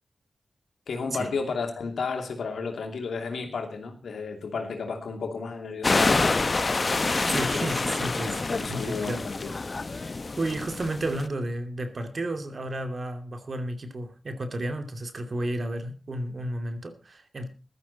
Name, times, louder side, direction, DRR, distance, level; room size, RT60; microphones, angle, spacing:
voice 1, 0.9-6.4 7.5-7.9 8.2-9.6, left 4 dB, 85° left, 2.7 m, -33 dB
sound 1, 5.8-11.3, left 3 dB, 50° left, 0.7 m, -27 dB
voice 2, 7.3-8.4 8.7-9.2 10.0-17.5, right 1 dB, 60° right, 2.6 m, -32 dB
15.5 x 12.5 x 4.2 m
cardioid pair, 45°, 0 cm